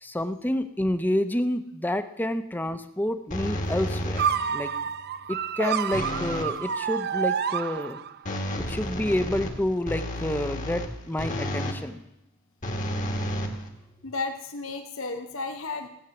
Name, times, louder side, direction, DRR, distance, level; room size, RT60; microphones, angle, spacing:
voice 1, 0.0-4.2 4.5-4.7 5.3-8.0 8.7-12.0, left 1 dB, 10° left, 9 dB, 0.7 m, -28 dB
sound 1, 3.3-4.5 5.9-6.6 8.2-11.8 12.6-14.1, equal, 40° left, 1.7 m, -31 dB
sound 2, 4.2-8.3, right 7 dB, 55° right, 0.5 m, -29 dB
voice 2, 14.0-15.9, left 3 dB, 80° left, 6 dB, 1.0 m, -33 dB
16.0 x 8.1 x 7.0 m, 0.86 s
head